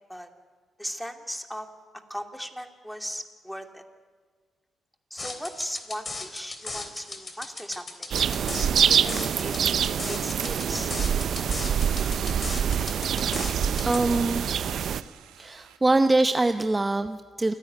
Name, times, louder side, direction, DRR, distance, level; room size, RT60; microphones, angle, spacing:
voice 1, 0.8-1.7 2.1-3.8 5.1-8.1 8.9-9.5 10.0-10.9, equal, ahead, 5 dB, 2.6 m, -37 dB
sound 1, 5.2-14.0, left 3 dB, 40° left, 3.3 m, -37 dB
sound 2, 8.1-15.0, right 8 dB, 65° right, 0.6 m, -25 dB
sound 3, 9.7-15.8, right 10 dB, 85° right, 1.5 m, -49 dB
voice 2, 13.8-14.4 15.4-17.5, right 2 dB, 25° right, 9 dB, 0.8 m, -23 dB
28.5 x 10.5 x 9.4 m, 1.5 s
hypercardioid pair, 45°, 0 cm